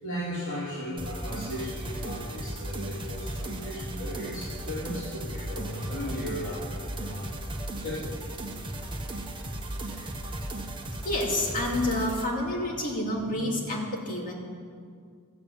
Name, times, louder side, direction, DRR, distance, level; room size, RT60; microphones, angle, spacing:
voice 1, 0.0-7.4 7.8-8.2 9.9-10.0, equal, 60° left, -9 dB, 3.5 m, -36 dB
sound 1, 1.0-12.3, right 1 dB, 25° right, 1.2 m, -36 dB
voice 2, 11.0-14.3, left 1 dB, 40° left, -1 dB, 2.4 m, -29 dB
14.0 x 7.8 x 8.8 m, 2.1 s
head